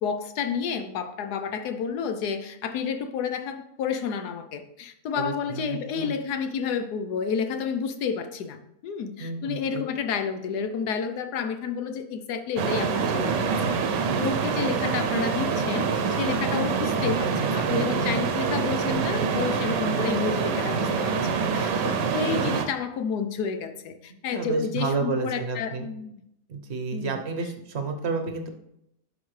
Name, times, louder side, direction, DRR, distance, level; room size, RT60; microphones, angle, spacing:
voice 1, 0.0-26.1 26.9-27.2, left 6 dB, 75° left, 8 dB, 1.3 m, -30 dB
voice 2, 5.2-6.1 9.2-9.8 17.4-18.6 24.3-25.9 26.5-28.5, right 4 dB, 50° right, 5 dB, 1.0 m, -31 dB
sound 1, 12.6-22.7, right 5 dB, 90° right, 1.4 m, -25 dB
11.5 x 5.0 x 3.2 m, 0.78 s
omnidirectional pair, 1.8 m